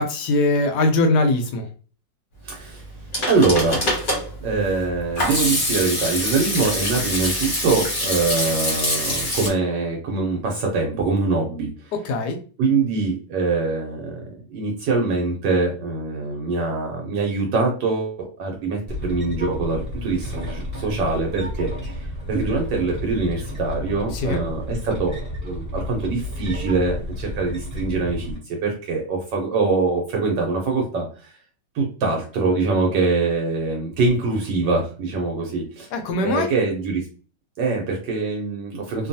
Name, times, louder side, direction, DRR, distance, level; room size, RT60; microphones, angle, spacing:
voice 1, 0.0-1.7 12.0-12.4 24.2-24.4 35.9-36.5, left 2 dB, 75° left, 5 dB, 1.1 m, -21 dB
voice 2, 2.4-2.8 3.3-4.0 4.4-11.9 12.6-25.2 25.4-31.3 31.7-35.9 36.2-37.1 37.6-39.1, right 3 dB, 75° right, 0 dB, 1.3 m, -24 dB
Hands / Sink (filling or washing), 2.8-9.5, left 1 dB, 40° left, 0.8 m, -25 dB
sound 1, 18.9-28.4, left 1 dB, 5° right, 1.0 m, -31 dB
3.0 x 2.2 x 2.6 m, 0.38 s
omnidirectional pair, 2.0 m